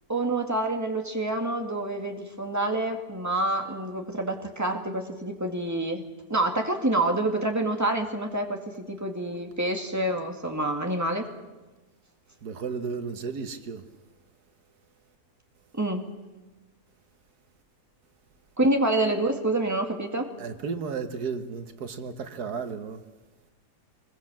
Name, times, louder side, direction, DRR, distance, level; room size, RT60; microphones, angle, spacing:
voice 1, 0.1-6.0 6.3-11.3 15.7-16.1 18.6-20.3, right 1 dB, 10° right, 2.2 m, -27 dB
voice 2, 12.4-13.8 20.4-23.0, right 5 dB, 90° right, 1.8 m, -33 dB
24.0 x 21.5 x 7.5 m
omnidirectional pair, 1.6 m